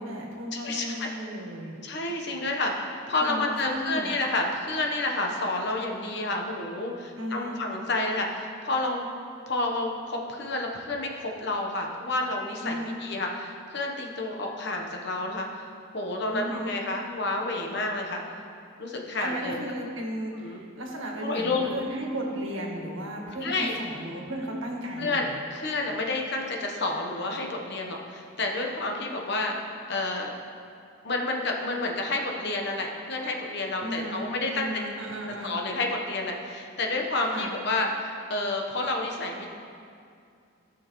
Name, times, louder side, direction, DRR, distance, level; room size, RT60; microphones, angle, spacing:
voice 1, 0.0-1.7 3.1-4.2 7.2-7.6 12.6-13.0 16.3-16.7 19.2-25.4 33.8-34.2 34.5-35.6 37.2-37.5, right 1 dB, 80° right, 0 dB, 1.5 m, -35 dB
voice 2, 0.5-1.1 1.8-9.1 9.5-15.7 15.9-18.2 18.8-19.6 20.4-20.6 21.2-21.8 23.4-23.7 25.0-29.6 29.9-30.3 31.0-34.8 35.4-39.5, left 2 dB, 55° left, 1 dB, 1.0 m, -30 dB
14.5 x 6.3 x 3.1 m, 2.5 s
head